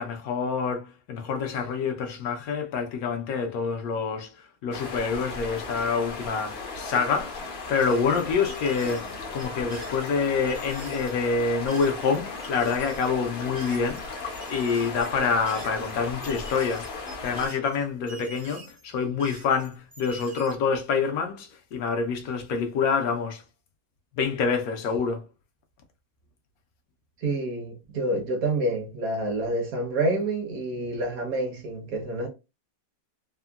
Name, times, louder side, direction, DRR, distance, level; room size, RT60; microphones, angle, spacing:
voice 1, 0.0-4.3 4.6-7.4 7.7-9.1 9.3-14.0 14.5-16.9 17.2-23.4 24.2-25.2, left 5 dB, 70° left, 1.0 m, -27 dB
sound 1, 4.7-17.5, left 3 dB, 55° left, 0.7 m, -36 dB
sound 2, 7.8-14.0 14.3-20.5, right 2 dB, 45° right, 0.6 m, -46 dB
voice 2, 27.2-32.3, right 2 dB, 65° right, 1.3 m, -28 dB
3.6 x 2.1 x 2.3 m
omnidirectional pair, 1.7 m